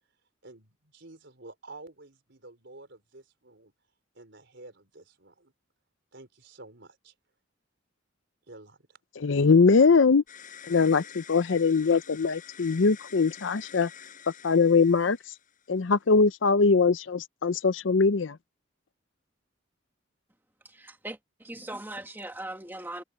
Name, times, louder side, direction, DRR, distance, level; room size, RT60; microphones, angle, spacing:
voice 1, 0.4-3.7 4.1-5.5 6.1-7.1 8.5-9.0, right 2 dB, 65° right, 5.1 m, -50 dB
voice 2, 9.2-10.2 10.7-13.9 14.4-15.2 15.7-18.4, left 4 dB, 75° left, 0.6 m, -22 dB
sound 1, 10.3-15.8, left 8 dB, 45° left, 7.7 m, -48 dB
voice 3, 20.6-23.0, right 1 dB, 10° right, 1.5 m, -40 dB
head